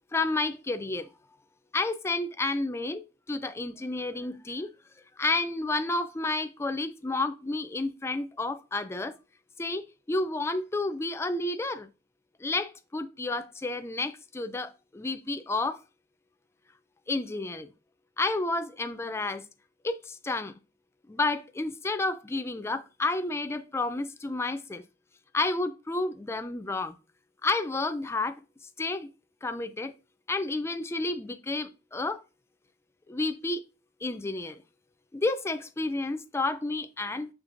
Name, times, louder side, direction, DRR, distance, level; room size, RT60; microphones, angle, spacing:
voice 1, 0.1-1.1 1.7-3.0 3.3-4.7 5.2-9.2 9.6-11.9 12.4-15.8 17.1-17.7 18.2-19.4 19.8-20.5 21.1-24.8 25.3-26.9 27.4-28.4 28.8-29.1 29.4-29.9 30.3-32.2 33.1-33.6 34.0-34.6 35.1-37.3, left 2 dB, 15° left, 0.3 m, -30 dB
6.6 x 3.1 x 2.5 m
head